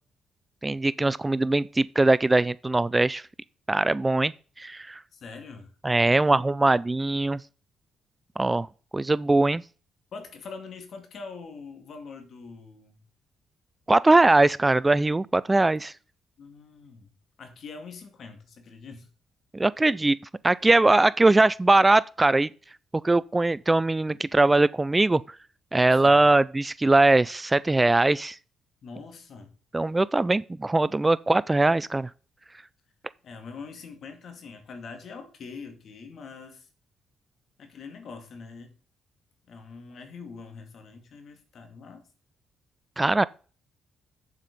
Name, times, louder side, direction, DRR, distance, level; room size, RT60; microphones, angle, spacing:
voice 1, 0.6-3.2 3.7-4.3 4.6-5.0 5.8-7.4 8.4-8.7 8.9-9.6 13.9-15.9 19.5-20.2 20.4-22.5 23.0-25.2 25.7-28.4 29.7-32.1 43.0-43.2, right 2 dB, 15° right, 0.3 m, -21 dB
voice 2, 5.1-5.7 6.1-6.4 10.1-13.0 16.4-17.1 17.4-19.1 26.0-26.3 28.8-29.5 33.2-36.7 37.6-38.8 39.5-42.1, left 4 dB, 60° left, 2.2 m, -43 dB
7.6 x 7.4 x 5.3 m
cardioid pair, 90°, 0 cm